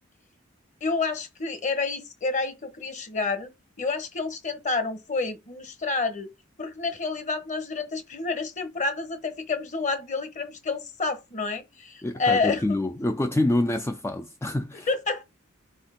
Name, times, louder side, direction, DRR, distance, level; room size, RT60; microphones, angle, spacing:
voice 1, 0.8-3.5 3.8-6.3 6.6-12.8 14.9-15.2, left 4 dB, 35° left, 1.1 m, -29 dB
voice 2, 12.0-14.9, left 1 dB, 10° left, 0.4 m, -26 dB
4.9 x 4.4 x 5.1 m
head